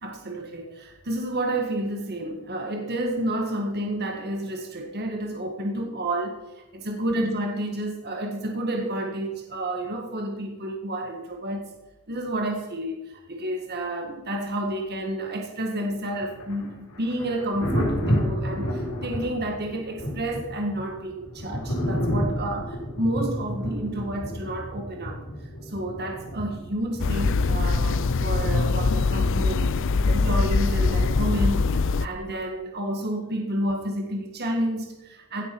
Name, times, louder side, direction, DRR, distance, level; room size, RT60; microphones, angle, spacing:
voice 1, 0.0-6.4 6.7-11.7 12.1-25.2 25.6-35.4, right 1 dB, 45° right, 2 dB, 1.8 m, -30 dB
Thunder, 16.1-29.8 31.4-31.6, equal, 80° left, 5.2 m, -31 dB
sound 1, 27.0-32.1, left 3 dB, 60° left, 0.6 m, -23 dB
17.0 x 7.4 x 6.2 m, 1.0 s
head